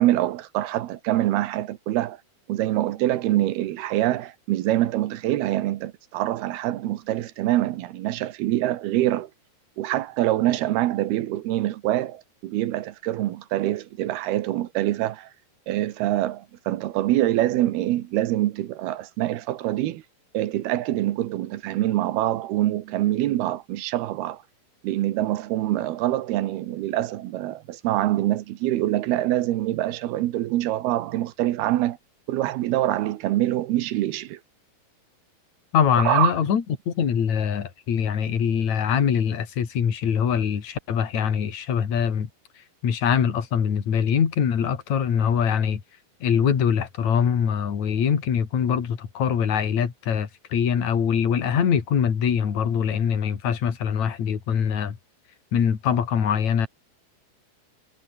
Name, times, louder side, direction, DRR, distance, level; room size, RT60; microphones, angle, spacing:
voice 1, 0.0-2.2 2.5-9.3 9.8-15.3 15.7-20.0 20.3-24.4 24.8-32.0 32.3-34.4 36.0-36.3, right 14 dB, 75° right, 3.0 m, -25 dB
voice 2, 35.7-42.3 42.8-45.8 46.2-55.0 55.5-56.7, left 7 dB, 45° left, 3.7 m, -23 dB
omnidirectional pair, 4.8 m